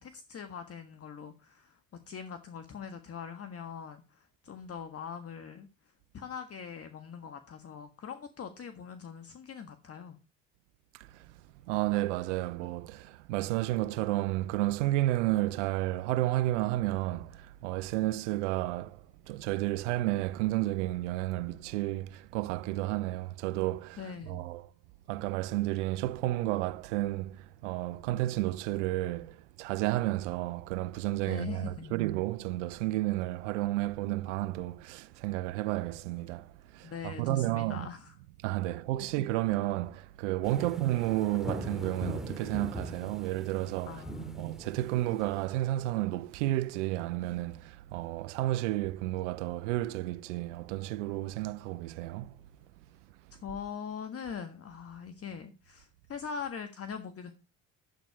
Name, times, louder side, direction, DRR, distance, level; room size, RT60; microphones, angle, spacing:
voice 1, 0.0-1.8 2.1-5.7 6.1-10.2 24.0-24.4 31.2-31.9 36.8-38.1 38.7-38.8 40.6-40.7 43.9-44.4 53.4-57.3, left 6 dB, 40° left, 1.6 m, -42 dB
voice 2, 10.9-11.2 11.7-24.7 25.1-37.9 38.4-52.4, right 16 dB, 90° right, 0.8 m, -32 dB
sound 1, 40.4-45.5, equal, ahead, 2.3 m, -41 dB
11.5 x 8.8 x 4.8 m
supercardioid pair, 75°, 35 cm